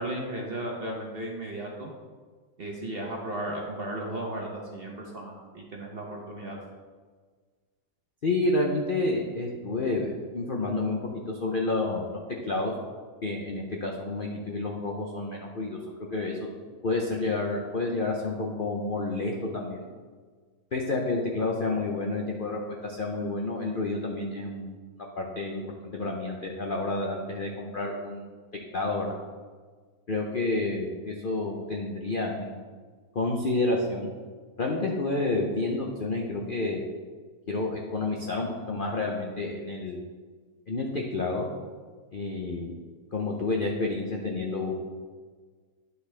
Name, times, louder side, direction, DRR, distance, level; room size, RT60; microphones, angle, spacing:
voice 1, 0.0-1.9 2.6-6.6, right 1 dB, 40° right, 0 dB, 0.9 m, -35 dB
voice 2, 8.2-11.0 11.4-12.7 13.2-15.8 16.1-16.4 16.8-19.9 20.7-24.8 25.2-28.3 28.7-29.1 30.1-32.6 33.1-34.1 34.6-36.8 37.5-40.1 40.7-41.5 42.1-42.7 43.1-44.7, left 2 dB, 60° left, 0 dB, 0.5 m, -29 dB
9.4 x 6.8 x 3.3 m, 1.5 s
omnidirectional pair, 1.9 m